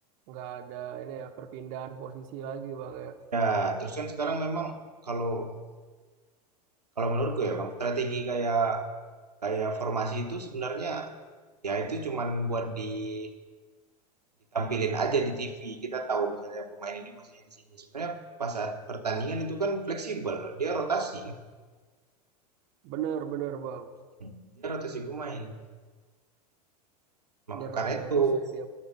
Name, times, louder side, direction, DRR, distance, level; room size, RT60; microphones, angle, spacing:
voice 1, 0.3-3.2 22.8-23.9 27.5-28.6, right 9 dB, 45° right, 7 dB, 0.7 m, -37 dB
voice 2, 3.3-5.5 7.0-8.9 9.4-11.1 11.6-13.3 14.5-17.4 17.8-21.4 24.2-25.6 27.5-28.4, right 3 dB, 85° right, 5 dB, 0.8 m, -30 dB
11.5 x 7.0 x 5.1 m, 1.4 s
figure-of-eight pair, 85°, 20 cm